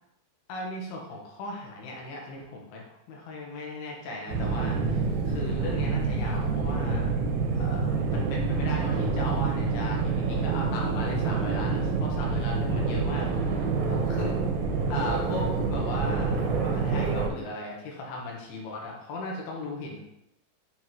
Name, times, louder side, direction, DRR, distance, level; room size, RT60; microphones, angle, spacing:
voice 1, 0.5-7.2 7.5-13.3 13.9-14.4 14.9-20.0, left 2 dB, 75° left, -1 dB, 2.7 m, -37 dB
sound 1, 4.3-17.3, right 4 dB, 85° right, 3.2 m, -27 dB
8.8 x 3.7 x 3.0 m, 0.84 s
omnidirectional pair, 5.1 m